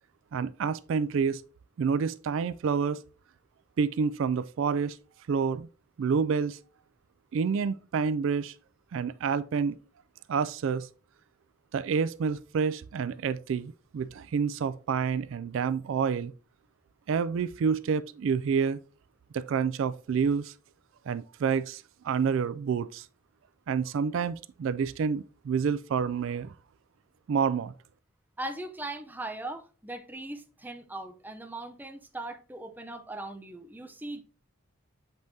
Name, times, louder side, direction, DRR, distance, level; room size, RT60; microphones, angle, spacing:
voice 1, 0.3-1.4 1.8-3.0 3.8-5.0 5.3-5.7 6.0-6.6 7.3-8.5 8.9-9.8 10.3-10.9 11.7-16.3 17.1-18.8 19.3-20.5 21.1-23.1 23.7-26.5 27.3-27.7, right 6 dB, 65° right, 0.3 m, -28 dB
voice 2, 28.4-34.2, right 2 dB, 10° right, 0.6 m, -39 dB
7.6 x 5.3 x 2.7 m
head